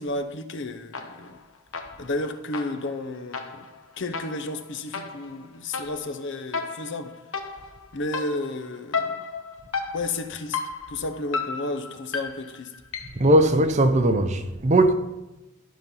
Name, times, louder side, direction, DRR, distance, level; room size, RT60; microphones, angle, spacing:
voice 1, 0.0-1.4 2.0-3.7 4.0-7.1 7.9-9.3 9.9-10.6 10.9-12.7, left 2 dB, 55° left, 0.7 m, -32 dB
sound 1, 0.9-1.4 1.7-13.3, left 4 dB, 75° left, 1.1 m, -34 dB
voice 2, 13.1-14.9, right 1 dB, 30° right, 0.7 m, -19 dB
12.5 x 5.3 x 5.6 m
head